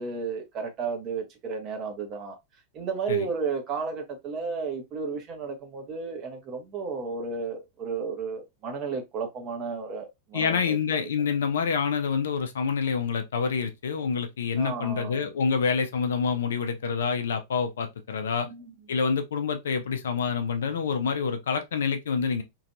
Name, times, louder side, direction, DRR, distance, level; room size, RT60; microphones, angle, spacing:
voice 1, 0.0-2.4 2.7-10.8 14.6-15.3 18.4-18.7, right 5 dB, 35° right, 0.9 m, -33 dB
voice 2, 10.3-18.5 18.9-22.4, left 6 dB, 65° left, 0.4 m, -27 dB
3.0 x 2.5 x 2.5 m
figure-of-eight pair, 90°, 0 cm